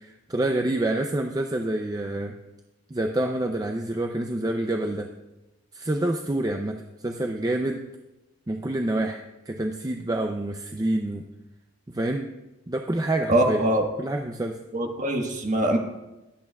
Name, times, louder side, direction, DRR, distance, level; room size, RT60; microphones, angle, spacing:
voice 1, 0.0-2.3 2.9-5.1 5.7-7.8 8.5-9.2 9.5-11.2 11.9-12.3 12.7-13.6 14.0-14.6, right 1 dB, 20° right, 3 dB, 0.5 m, -27 dB
voice 2, 13.3-13.8 14.7-15.8, right 1 dB, 40° right, 2 dB, 1.4 m, -23 dB
22.5 x 8.5 x 2.4 m, 1.0 s
head